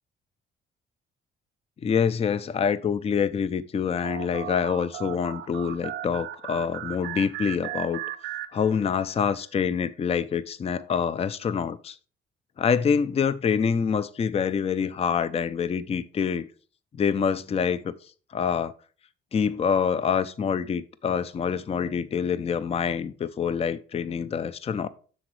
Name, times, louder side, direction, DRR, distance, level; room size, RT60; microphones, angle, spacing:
voice 1, 1.8-8.0 8.5-12.0 12.6-16.5 16.9-17.9 18.3-18.7 19.3-24.9, left 6 dB, 30° left, 0.4 m, -26 dB
sound 1, 4.0-9.1, right 12 dB, 75° right, 0.7 m, -37 dB
7.8 x 6.0 x 3.1 m
cardioid pair, 90°, 20 cm